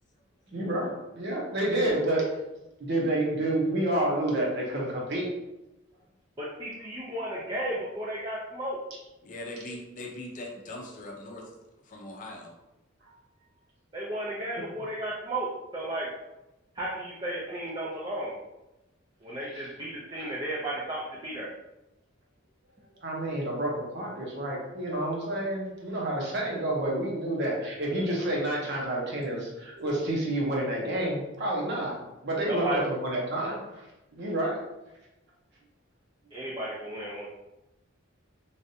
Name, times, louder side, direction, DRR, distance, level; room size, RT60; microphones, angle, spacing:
voice 1, 0.5-2.2 2.8-5.3 19.5-19.7 20.2-20.3 23.0-33.6 34.1-34.6, right 1 dB, 60° right, -2 dB, 0.9 m, -29 dB
voice 2, 6.4-8.8 13.9-16.1 16.8-18.3 19.2-21.5 32.5-32.8 36.3-37.3, right 1 dB, 25° right, -6 dB, 0.5 m, -34 dB
voice 3, 9.2-11.6 11.8-12.5, left 1 dB, 40° left, 0 dB, 0.5 m, -40 dB
3.2 x 2.5 x 2.7 m, 0.97 s
head